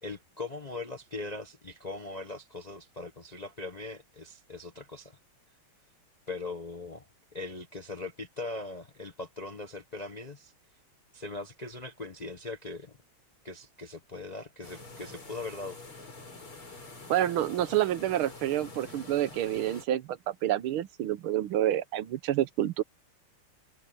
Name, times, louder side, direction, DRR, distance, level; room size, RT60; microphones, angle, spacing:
voice 1, 0.0-5.2 6.3-7.1 7.3-10.5 11.1-12.9 13.4-15.8, left 3 dB, 35° left, 0.6 m, -40 dB
sound 1, 14.6-19.9, left 2 dB, 90° left, 7.6 m, -47 dB
voice 2, 17.1-22.8, right 12 dB, 80° right, 1.7 m, -28 dB
omnidirectional pair, 2.3 m